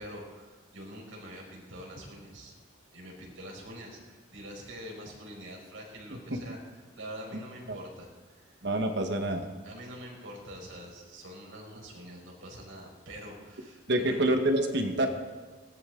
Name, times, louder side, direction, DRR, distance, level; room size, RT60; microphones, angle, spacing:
voice 1, 0.0-2.5 2.9-6.6 7.0-8.6 9.6-14.2, equal, 90° right, -1 dB, 5.2 m, -45 dB
voice 2, 8.6-9.5 13.9-15.1, right 1 dB, 60° right, 5 dB, 1.4 m, -26 dB
19.0 x 18.0 x 3.9 m, 1.4 s
head